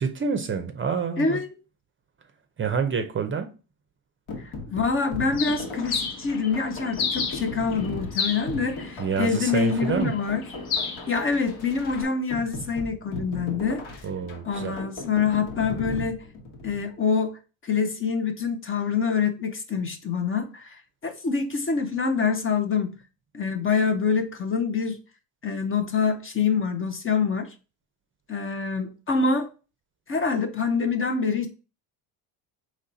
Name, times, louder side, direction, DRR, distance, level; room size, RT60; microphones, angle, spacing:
voice 1, 0.0-1.4 2.6-3.5 9.0-10.2 14.0-14.8, right 5 dB, 30° right, 0.5 m, -27 dB
voice 2, 1.2-1.5 4.4-10.4 11.1-13.8 14.4-16.2 16.6-23.0 23.3-25.0 25.4-27.5 28.3-29.5 30.1-31.5, left 5 dB, 30° left, 0.6 m, -26 dB
sound 1, 4.3-16.8, left 2 dB, 75° left, 1.4 m, -37 dB
Bird, 5.3-12.0, left 5 dB, 55° left, 1.1 m, -33 dB
4.1 x 3.1 x 3.9 m
cardioid pair, 110°, 44 cm